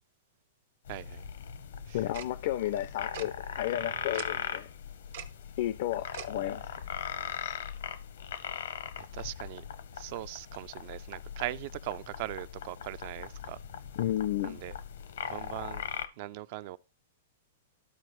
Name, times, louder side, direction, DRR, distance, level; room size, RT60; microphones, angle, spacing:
sound 1, 0.9-16.1, left 8 dB, 80° left, 0.8 m, -40 dB
voice 1, 0.9-1.2 1.9-2.0 9.1-9.6 9.9-13.6 14.4-14.7 15.3-15.8 16.2-16.8, right 16 dB, 50° right, 0.4 m, -40 dB
voice 2, 1.9-4.7 5.6-6.7 7.4-7.6 14.0-14.6, left 13 dB, 60° left, 0.4 m, -32 dB
Tick-tock, 2.1-2.3 3.1-3.3 4.1-4.3 5.1-5.3 6.1-6.3, right 10 dB, 70° right, 0.8 m, -41 dB
12.5 x 4.5 x 3.1 m
hypercardioid pair, 140°, 0 cm